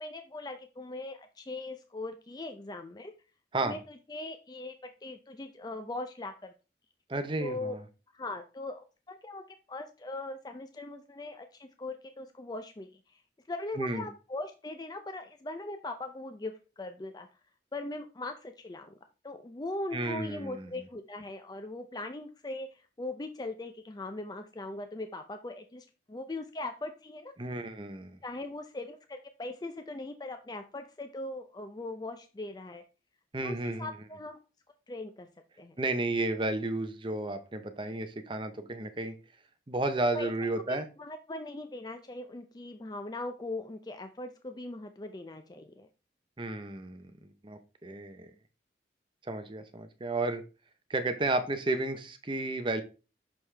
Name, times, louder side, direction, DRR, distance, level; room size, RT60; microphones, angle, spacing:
voice 1, 0.0-3.1 3.6-4.7 5.0-6.5 7.4-7.7 8.1-9.4 9.7-13.2 13.5-17.3 17.7-18.9 19.2-27.3 28.2-32.8 33.4-34.4 34.9-35.3 35.6-35.8 40.1-40.3 40.7-45.9, left 2 dB, 20° left, 7 dB, 0.4 m, -40 dB
voice 2, 7.1-7.8 13.8-14.1 19.9-20.7 27.4-28.2 33.3-33.9 35.8-39.1 39.7-40.9 46.4-48.3 49.3-50.4 50.9-52.8, right 2 dB, 25° right, 8 dB, 0.7 m, -32 dB
6.2 x 5.4 x 3.3 m, 0.32 s
head